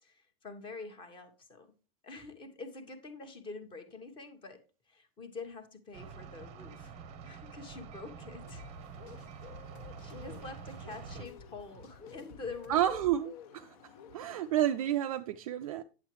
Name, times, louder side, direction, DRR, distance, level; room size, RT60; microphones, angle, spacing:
voice 1, 0.0-1.7 2.0-6.9 7.2-8.7 10.0-12.8, left 3 dB, 15° left, 1.1 m, -46 dB
sound 1, 5.9-11.3, right 6 dB, 20° right, 0.8 m, -47 dB
sound 2, 8.3-13.2, left 2 dB, 55° left, 1.6 m, -54 dB
Bird, 8.4-14.9, left 10 dB, 35° left, 0.6 m, -54 dB
voice 2, 12.7-13.8 14.1-15.8, right 11 dB, 35° right, 0.4 m, -30 dB
9.3 x 7.3 x 3.1 m
supercardioid pair, 165°, 31 cm